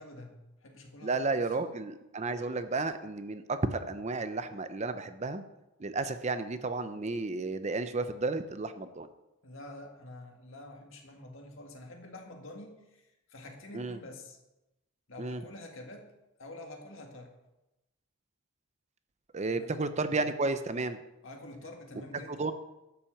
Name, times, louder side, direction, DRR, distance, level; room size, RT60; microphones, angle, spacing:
voice 1, 0.0-1.6 9.4-14.4 15.1-16.1 16.4-17.3 19.5-19.7 21.2-22.5, left 1 dB, 65° left, 3 dB, 1.9 m, -47 dB
voice 2, 1.0-5.4 5.8-9.1 13.7-14.0 15.2-15.4 19.3-21.0 22.4-22.5, right 3 dB, 30° right, 11 dB, 0.6 m, -32 dB
11.0 x 6.0 x 7.1 m, 0.97 s
head